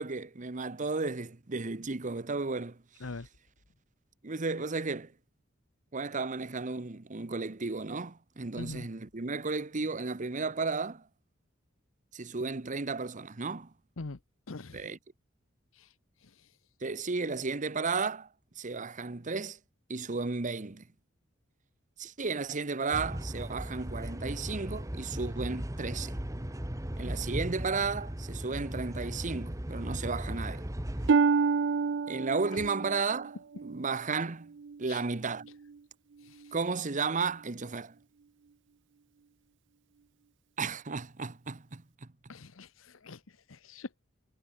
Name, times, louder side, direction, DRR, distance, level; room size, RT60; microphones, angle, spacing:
voice 1, 0.0-2.8 4.2-5.1 5.9-11.0 12.1-13.7 14.7-15.0 16.8-18.3 18.6-19.6 19.9-20.8 22.0-26.2 27.0-30.6 32.1-33.4 33.6-34.5 34.8-35.5 36.5-37.9 40.6-42.1, right 4 dB, 40° right, 1.0 m, -33 dB
voice 2, 8.6-8.9 14.0-14.2 14.5-14.9 15.7-15.9 16.2-16.6 32.5-32.6 34.9-35.0 36.2-36.5 42.3-44.0, left 3 dB, 80° left, 1.0 m, -44 dB
sound 1, 22.9-31.1, equal, 15° right, 1.6 m, -37 dB
Harp, 31.1-34.8 35.4-35.8 36.4-36.5, right 5 dB, 65° right, 0.5 m, -29 dB
head